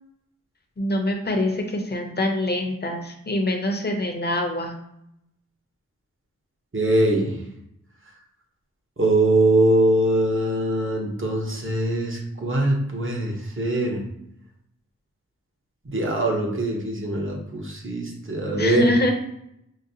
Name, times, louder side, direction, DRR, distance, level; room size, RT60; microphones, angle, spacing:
voice 1, 0.8-4.7 18.6-19.1, left 1 dB, 30° left, 2 dB, 0.7 m, -24 dB
voice 2, 6.7-7.3 9.0-14.0 15.9-18.9, right 1 dB, 40° right, -1 dB, 0.9 m, -22 dB
5.0 x 2.1 x 2.7 m, 0.77 s
wide cardioid pair, 55°, 33 cm